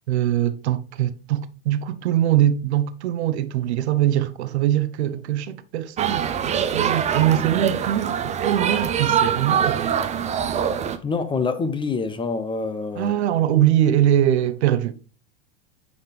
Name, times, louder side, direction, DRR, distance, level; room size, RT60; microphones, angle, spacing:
voice 1, 0.1-10.0 13.0-14.9, right 12 dB, 75° right, 0.8 m, -22 dB
sound 1, 6.0-11.0, right 8 dB, 20° right, 0.6 m, -23 dB
voice 2, 11.0-13.1, left 4 dB, 15° left, 0.7 m, -26 dB
9.5 x 4.3 x 3.4 m
hypercardioid pair, 115°, 33 cm